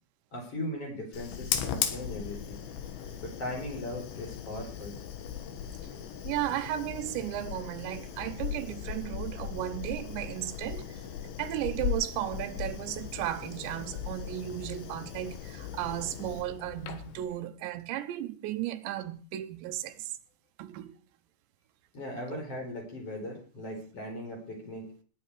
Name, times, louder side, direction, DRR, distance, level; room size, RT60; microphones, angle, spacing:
voice 1, 0.3-2.6 3.2-4.9 21.9-24.9, left 1 dB, 35° left, 5.0 m, -38 dB
Fire, 1.1-17.3, left 8 dB, 80° left, 3.7 m, -38 dB
voice 2, 6.2-11.0 11.4-20.2 20.6-21.0 22.3-22.4, right 13 dB, 80° right, 3.1 m, -35 dB
19.0 x 9.4 x 4.8 m
omnidirectional pair, 5.1 m